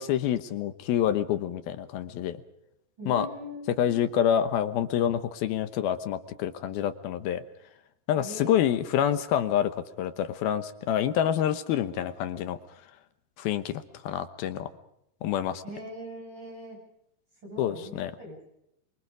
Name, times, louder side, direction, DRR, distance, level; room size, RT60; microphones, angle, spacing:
voice 1, 0.0-2.4 3.1-3.3 3.8-7.4 8.1-12.6 13.4-14.7 15.2-15.6 17.6-18.1, left 10 dB, 70° left, 10 dB, 2.8 m, -27 dB
voice 2, 3.0-4.1 8.2-8.8 15.6-16.8 17.4-18.4, equal, 25° right, 1 dB, 8.7 m, -41 dB
26.5 x 24.0 x 5.1 m, 0.78 s
omnidirectional pair, 4.8 m